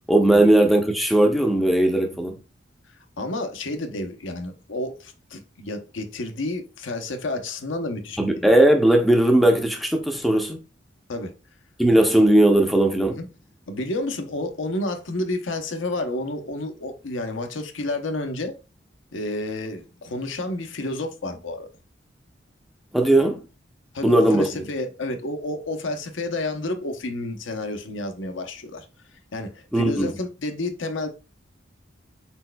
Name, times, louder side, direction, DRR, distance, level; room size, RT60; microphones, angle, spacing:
voice 1, 0.1-2.4 8.2-10.6 11.8-13.2 22.9-23.4 24.0-24.5 29.7-30.1, right 1 dB, ahead, 0.5 m, -18 dB
voice 2, 3.2-8.5 11.1-11.3 13.1-13.3 13.7-18.6 19.1-21.7 23.9-28.9 29.3-31.1, left 2 dB, 80° left, 0.8 m, -30 dB
4.4 x 4.2 x 2.2 m
head